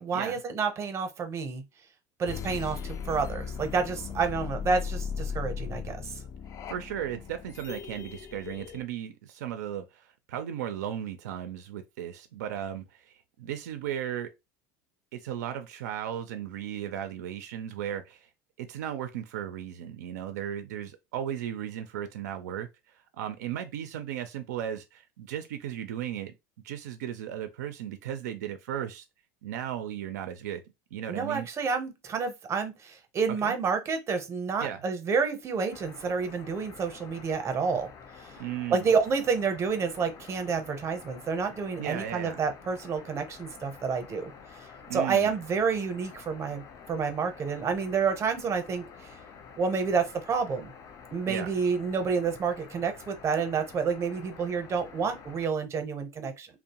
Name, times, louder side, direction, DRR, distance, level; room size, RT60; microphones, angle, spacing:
voice 1, 0.0-1.6 2.2-2.8 3.1-6.1 31.1-37.9 38.7-44.3 44.9-49.1 49.6-50.7 51.1-56.5, right 5 dB, 30° right, 0.7 m, -29 dB
sound 1, 2.3-8.8, left 6 dB, 40° left, 0.3 m, -37 dB
voice 2, 6.7-14.3 15.1-18.3 18.6-26.3 26.6-29.0 29.4-30.6 30.9-31.5 33.4-33.6 34.6-34.8 38.4-38.9 41.8-42.4 44.9-45.3 51.3-51.5, right 10 dB, 85° right, 0.4 m, -36 dB
sound 2, 35.7-55.5, left 6 dB, 60° left, 0.7 m, -49 dB
2.6 x 2.0 x 2.8 m
supercardioid pair, 105°, 9 cm